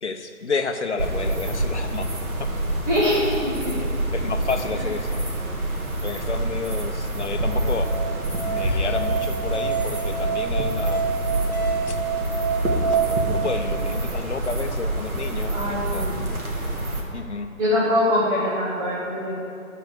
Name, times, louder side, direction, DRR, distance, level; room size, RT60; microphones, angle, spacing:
voice 1, 0.0-2.1 2.4-2.5 4.1-5.3 6.0-7.9 8.5-11.0 11.9-12.0 12.8-15.6 15.9-16.4 17.1-17.5, left 4 dB, 55° left, 6 dB, 0.9 m, -31 dB
sound 1, 1.0-17.0, right 1 dB, 90° right, 2.4 m, -27 dB
voice 2, 2.9-3.8 4.1-4.2 15.5-16.2 17.6-19.4, left 1 dB, 30° right, -12 dB, 2.4 m, -23 dB
Musical instrument, 7.3-12.9, right 5 dB, 30° left, 1.0 m, -28 dB
13.0 x 4.9 x 6.7 m, 2.6 s
figure-of-eight pair, 175°, 42 cm